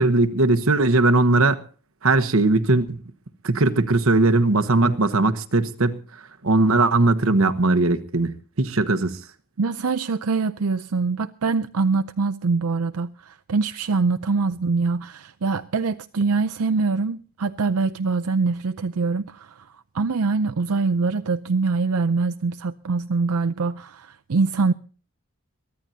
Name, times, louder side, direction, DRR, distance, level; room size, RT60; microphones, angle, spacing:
voice 1, 0.0-1.6 2.0-3.0 3.4-6.0 6.4-9.2, right 2 dB, 70° right, 1.1 m, -19 dB
voice 2, 9.6-19.6 19.9-24.7, right 4 dB, 85° right, 0.6 m, -24 dB
23.0 x 15.0 x 2.8 m
head